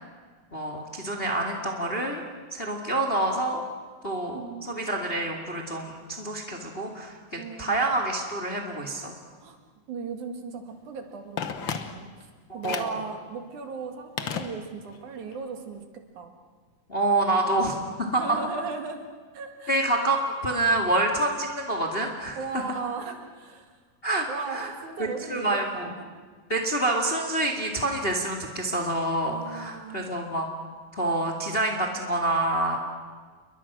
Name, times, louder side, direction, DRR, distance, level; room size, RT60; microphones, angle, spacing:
voice 1, 0.5-2.2 2.5-3.6 4.0-7.2 7.6-9.1 12.5-12.9 16.9-18.4 19.7-22.4 24.0-24.7 25.0-25.9 26.5-30.5 30.9-32.8, right 2 dB, 20° left, 2 dB, 1.8 m, -27 dB
voice 2, 4.3-4.7 7.4-7.8 9.4-9.6 9.9-12.3 12.5-15.8 16.1-16.3 18.2-19.9 22.3-23.8 24.3-25.7 26.0-26.2 29.3-30.2, right 5 dB, 65° right, 5 dB, 3.2 m, -37 dB
Telephone, 11.4-12.2 12.6-13.0 14.2-15.0 15.3-15.4, left 7 dB, 65° left, 1.2 m, -33 dB
29.0 x 22.5 x 6.2 m, 1.5 s
omnidirectional pair, 4.0 m